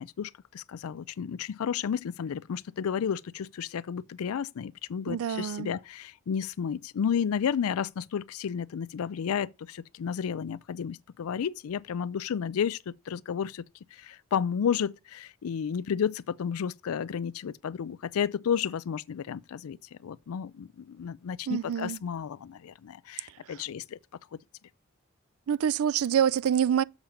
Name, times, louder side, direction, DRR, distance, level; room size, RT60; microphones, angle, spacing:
voice 1, 0.0-13.6 13.9-24.0, left 7 dB, 85° left, 0.4 m, -32 dB
voice 2, 5.1-5.7 21.5-22.0 23.5-23.6 25.5-26.8, right 8 dB, 75° right, 0.4 m, -26 dB
7.2 x 5.0 x 7.1 m
head